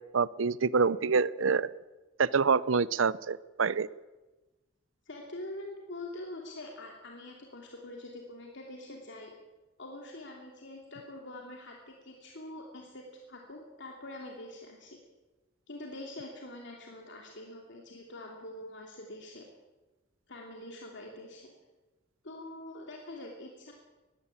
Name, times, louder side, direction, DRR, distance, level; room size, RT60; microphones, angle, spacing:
voice 1, 0.1-1.7 2.2-3.9, right 5 dB, 75° right, 20 dB, 0.6 m, -26 dB
voice 2, 5.0-9.3 9.8-15.0 15.7-19.4 20.3-21.5 22.2-23.7, left 1 dB, 65° left, 0 dB, 2.9 m, -45 dB
21.0 x 15.5 x 8.8 m, 1.1 s
head